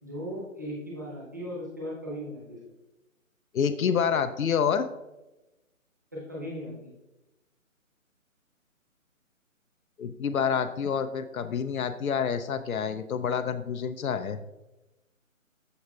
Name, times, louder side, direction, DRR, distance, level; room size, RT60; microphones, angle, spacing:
voice 1, 0.0-2.6 6.1-6.9, equal, 15° right, -5 dB, 1.0 m, -37 dB
voice 2, 3.5-4.8 10.0-14.4, left 7 dB, 90° left, 9 dB, 0.6 m, -28 dB
13.0 x 4.9 x 2.3 m, 1.0 s
hypercardioid pair, 175°, 41 cm